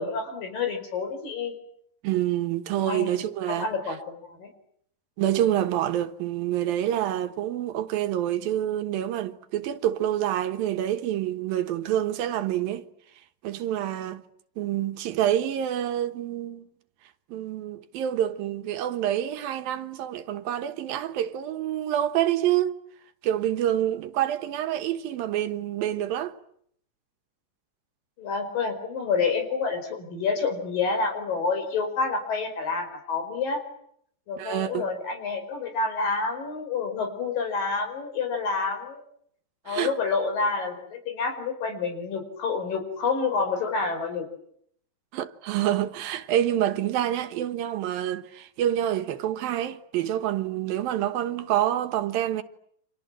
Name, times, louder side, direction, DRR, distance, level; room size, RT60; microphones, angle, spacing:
voice 1, 0.0-1.5 2.9-3.1 3.5-4.5 28.2-33.6 34.3-39.0 39.7-44.3, left 4 dB, 70° left, 6.7 m, -28 dB
voice 2, 2.0-3.7 5.2-12.9 13.4-14.2 14.6-16.7 17.3-22.8 23.2-26.3 34.4-34.8 39.7-39.9 45.1-52.4, right 11 dB, 80° right, 3.1 m, -27 dB
29.5 x 26.5 x 7.5 m
omnidirectional pair, 4.1 m